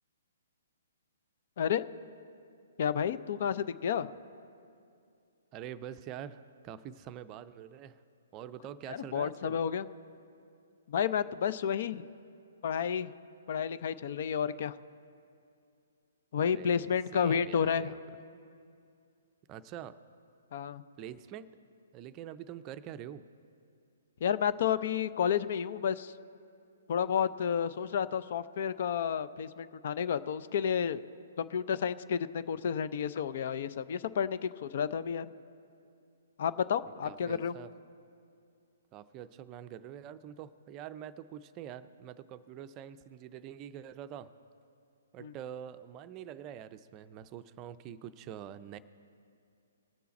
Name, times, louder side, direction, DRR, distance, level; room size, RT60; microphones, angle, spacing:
voice 1, 2.8-4.1 8.9-9.8 10.9-12.0 12.6-13.1 13.5-14.7 16.3-17.9 20.5-20.8 24.2-26.1 26.9-31.0 31.4-35.3 36.4-37.5 45.2-45.3, left 8 dB, 55° left, 14 dB, 0.5 m, -31 dB
voice 2, 5.5-8.0 8.3-9.6 16.4-18.0 19.5-20.0 21.0-21.5 21.9-23.2 37.0-37.7 38.9-44.3 45.1-48.8, right 10 dB, 30° right, 12 dB, 0.5 m, -45 dB
20.5 x 6.9 x 4.2 m, 2.4 s
hypercardioid pair, 140°, 0 cm